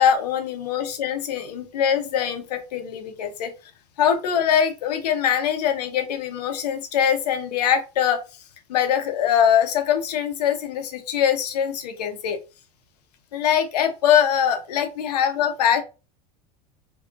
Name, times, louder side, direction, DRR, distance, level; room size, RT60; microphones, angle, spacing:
voice 1, 0.0-3.5 4.0-8.2 8.7-12.4 13.3-15.8, left 9 dB, 90° left, 7 dB, 0.6 m, -22 dB
2.6 x 2.4 x 2.4 m, 0.30 s
supercardioid pair, 105°, 20 cm